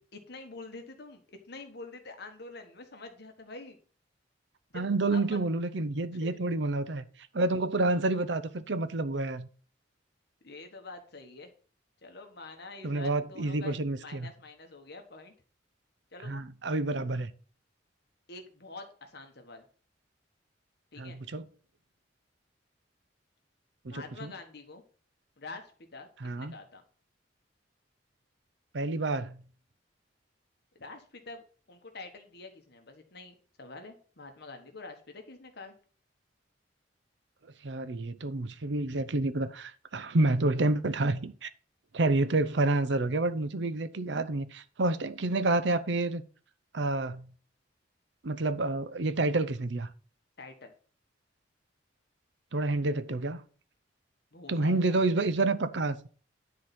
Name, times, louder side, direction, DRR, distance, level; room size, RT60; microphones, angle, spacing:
voice 1, 0.1-3.8 4.7-5.4 6.2-6.4 10.4-11.5 12.0-15.3 16.1-16.4 18.3-19.6 20.9-21.2 23.9-24.8 25.4-26.8 30.7-35.7 50.4-50.7 54.3-55.3, left 3 dB, 60° left, 1.4 m, -46 dB
voice 2, 4.7-7.1 7.3-9.5 12.8-14.3 16.2-17.3 21.0-21.4 23.8-24.3 26.2-26.5 28.7-29.4 37.6-41.5 41.9-46.2 46.7-47.3 48.2-49.9 52.5-53.4 54.5-56.0, right 2 dB, 65° right, 0.7 m, -29 dB
10.0 x 4.0 x 5.9 m
head